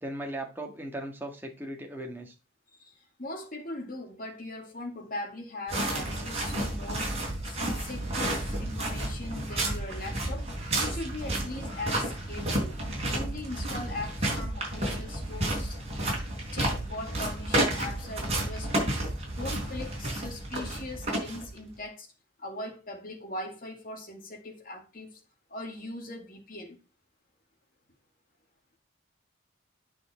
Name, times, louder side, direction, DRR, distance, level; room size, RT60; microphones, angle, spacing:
voice 1, 0.0-2.3, right 1 dB, 10° right, 1.7 m, -37 dB
voice 2, 2.7-7.2 7.4-10.5 10.8-12.8 13.1-15.8 16.5-22.1 22.4-25.2 25.5-26.8, left 2 dB, 40° left, 2.3 m, -40 dB
sound 1, 5.7-21.7, right 1 dB, 30° right, 4.3 m, -31 dB
9.3 x 6.1 x 4.4 m
head